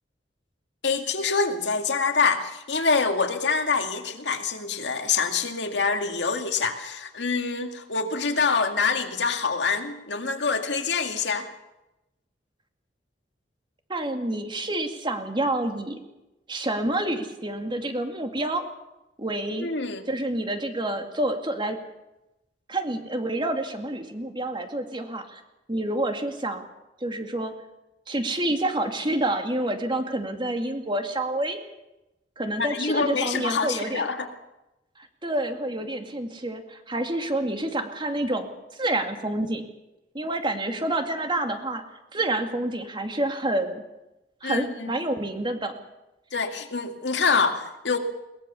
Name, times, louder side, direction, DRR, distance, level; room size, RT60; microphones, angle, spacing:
voice 1, 0.8-11.5 19.6-20.0 32.6-34.3 44.4-44.9 46.3-48.0, left 4 dB, 75° left, 5 dB, 2.2 m, -25 dB
voice 2, 13.9-16.0 16.5-18.6 19.2-19.7 20.1-21.8 22.7-25.4 25.7-26.7 27.0-27.5 28.1-31.6 32.4-34.1 35.0-38.5 38.8-39.6 40.1-41.8 42.1-43.8 44.4-45.8, right 1 dB, 25° right, 5 dB, 2.3 m, -28 dB
22.0 x 19.5 x 7.0 m, 0.96 s
head